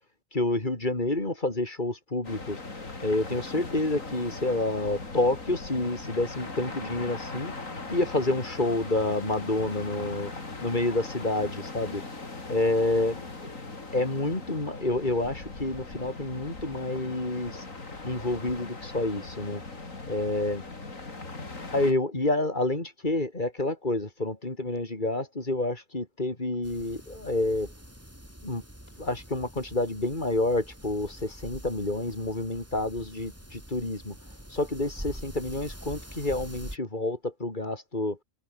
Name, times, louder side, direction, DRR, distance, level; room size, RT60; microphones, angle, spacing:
voice 1, 0.3-2.6 3.0-7.5 7.9-10.3 10.6-12.0 12.5-13.3 13.9-17.6 18.0-19.6 20.1-20.6 21.7-27.7 28.4-28.6 29.0-34.2 34.5-38.2, left 2 dB, 35° left, 4.2 m, -28 dB
sound 1, 2.2-21.9, left 3 dB, 75° left, 4.2 m, -40 dB
sound 2, 26.6-36.8, equal, 10° right, 5.8 m, -45 dB
omnidirectional pair, 1.4 m